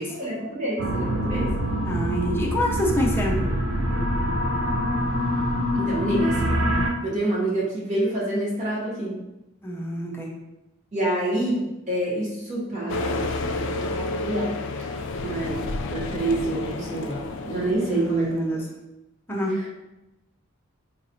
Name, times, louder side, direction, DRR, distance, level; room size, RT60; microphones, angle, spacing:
voice 1, 0.1-1.5 5.7-6.6 7.0-9.2 10.9-14.9 15.2-18.6 19.5-19.6, right 1 dB, 40° right, -5 dB, 1.1 m, -27 dB
sound 1, 0.8-6.9, equal, 90° right, 0.5 m, -25 dB
voice 2, 1.9-3.4 9.6-10.3 17.9-18.6 19.3-19.5, left 1 dB, 10° left, -3 dB, 0.5 m, -26 dB
sound 2, 12.9-18.5, left 3 dB, 60° left, 0.3 m, -31 dB
4.0 x 2.9 x 2.7 m, 0.96 s
head